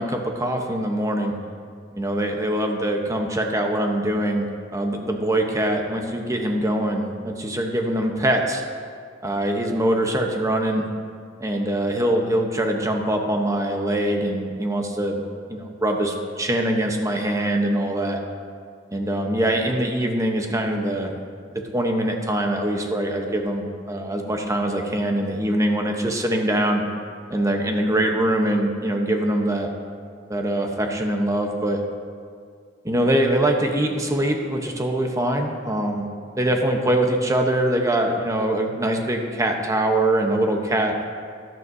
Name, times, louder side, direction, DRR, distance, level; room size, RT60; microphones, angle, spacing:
voice 1, 0.0-1.3 1.9-8.6 9.2-10.9 11.4-18.2 18.9-21.1 21.7-26.8 27.3-29.7 30.3-31.8 32.8-36.1 36.4-41.0, right 1 dB, 15° right, 2 dB, 0.9 m, -23 dB
14.0 x 12.0 x 2.7 m, 2.2 s
head